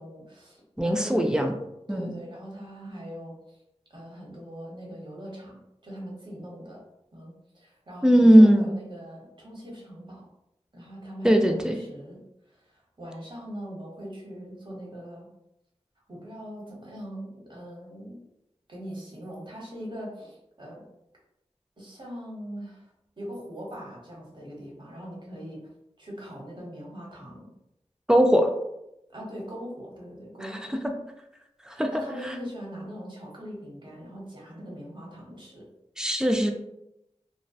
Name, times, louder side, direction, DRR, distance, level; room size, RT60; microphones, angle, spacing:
voice 1, 0.0-1.5 1.9-3.6 3.9-5.6 5.8-6.8 7.1-10.3 10.7-15.3 16.1-18.2 18.7-20.8 21.8-22.9 23.2-25.6 26.0-27.5 29.1-30.8 31.7-35.6, equal, 40° right, -4 dB, 0.9 m, -41 dB
voice 2, 0.8-1.5 1.9-2.1 8.0-8.7 11.2-11.7 28.1-28.5 30.4-30.5 31.7-31.9 32.2-32.3 36.0-36.5, equal, 5° right, 4 dB, 0.3 m, -19 dB
2.6 x 2.1 x 2.2 m, 0.85 s
wide cardioid pair, 65°, 12 cm